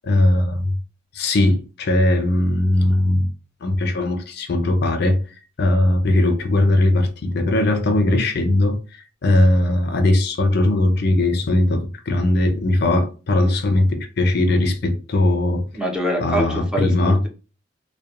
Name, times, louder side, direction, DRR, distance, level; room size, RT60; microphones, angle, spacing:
voice 1, 0.0-0.8 1.1-3.3 3.6-5.2 5.6-8.8 9.2-15.7 16.2-17.2, left 1 dB, 55° left, 0.4 m, -19 dB
voice 2, 15.7-17.3, equal, 5° right, 0.5 m, -24 dB
2.8 x 2.1 x 2.4 m
head